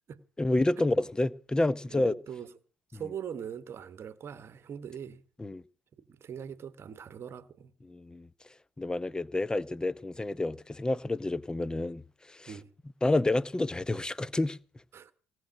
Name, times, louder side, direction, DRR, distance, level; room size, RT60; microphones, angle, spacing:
voice 1, 0.4-2.1 5.4-5.6 7.9-8.3 8.8-12.0 12.3-12.5 13.0-14.6, left 2 dB, 10° left, 0.7 m, -29 dB
voice 2, 1.9-2.5 2.9-5.2 6.1-7.7 12.5-12.7 14.9-15.1, right 8 dB, 40° right, 1.2 m, -41 dB
18.0 x 6.3 x 10.0 m
figure-of-eight pair, 55°, 7 cm